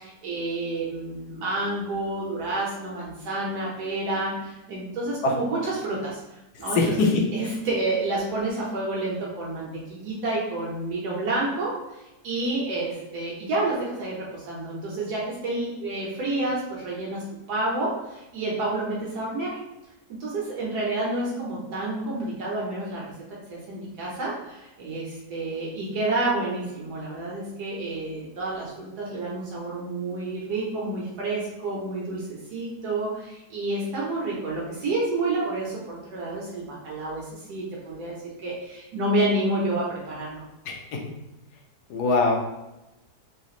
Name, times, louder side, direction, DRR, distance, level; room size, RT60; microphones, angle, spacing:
voice 1, 0.0-6.2 6.6-6.9 7.3-19.6 20.1-40.4, right 2 dB, 75° right, -5 dB, 1.4 m, -29 dB
voice 2, 6.8-7.2 40.7-41.0 41.9-42.4, left 3 dB, 75° left, 1 dB, 1.2 m, -22 dB
4.0 x 2.9 x 2.4 m, 0.97 s
omnidirectional pair, 1.7 m